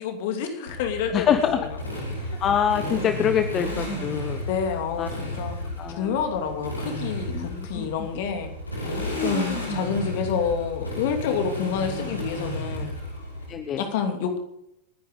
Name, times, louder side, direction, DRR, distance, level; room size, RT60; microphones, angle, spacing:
voice 1, 0.0-1.7 4.5-5.6 6.0-8.5 8.8-12.9 13.8-14.4, left 7 dB, 50° left, 5 dB, 2.8 m, -28 dB
Motorcycle, 0.7-13.5, equal, 80° left, 5.4 m, -32 dB
voice 2, 1.1-1.6 2.4-4.4 5.0-5.1 5.8-6.1 7.3-7.9 13.5-13.8, left 8 dB, 30° left, 9 dB, 1.1 m, -25 dB
29.0 x 11.0 x 3.9 m, 0.81 s
figure-of-eight pair, 90°, 0 cm